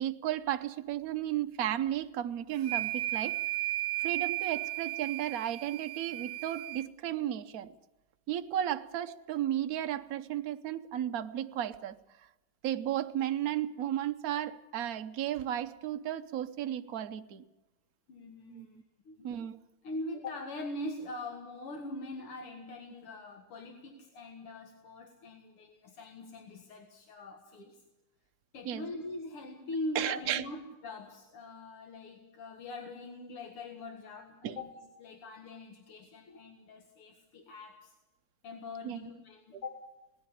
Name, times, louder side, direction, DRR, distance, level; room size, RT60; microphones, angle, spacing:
voice 1, 0.0-3.4 4.0-7.7 8.3-12.0 12.6-17.4 18.5-18.7 19.2-19.6 28.6-28.8 29.9-30.4 34.4-34.6 38.8-39.1 39.5-39.6, right 11 dB, 60° right, 1.0 m, -34 dB
sound 1, 2.6-6.9, right 16 dB, 85° right, 2.0 m, -35 dB
voice 2, 18.1-18.8 19.1-19.3 19.8-27.8 28.5-34.7 35.0-37.9 38.4-39.8, left 2 dB, 85° left, 2.7 m, -42 dB
18.5 x 14.5 x 9.8 m
omnidirectional pair, 2.4 m